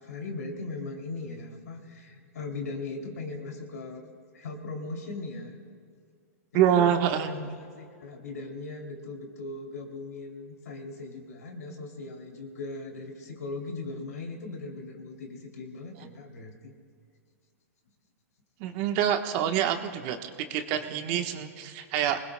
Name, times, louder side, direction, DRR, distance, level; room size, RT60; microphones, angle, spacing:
voice 1, 0.0-4.0 4.3-5.6 6.7-6.9 7.2-7.5 7.8-16.7, left 3 dB, 80° left, 2 dB, 2.8 m, -39 dB
voice 2, 6.5-7.3 18.6-22.2, right 10 dB, 45° right, 7 dB, 1.1 m, -26 dB
25.5 x 20.0 x 2.2 m, 2.2 s
hypercardioid pair, 120°, 8 cm